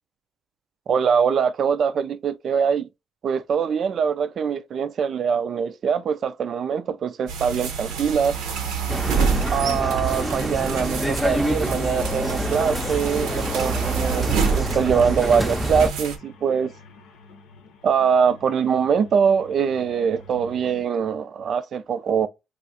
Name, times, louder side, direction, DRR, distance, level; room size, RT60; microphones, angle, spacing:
voice 1, 0.9-2.9 3.2-8.4 9.5-16.7 17.8-22.3, right 7 dB, 60° right, 0.3 m, -23 dB
sound 1, 7.3-16.2, right 6 dB, 85° right, 0.7 m, -28 dB
sound 2, 8.9-15.9, equal, 5° right, 0.5 m, -27 dB
sound 3, 9.0-20.8, left 2 dB, 90° left, 0.7 m, -46 dB
2.4 x 2.4 x 4.0 m
supercardioid pair, 65°, 0 cm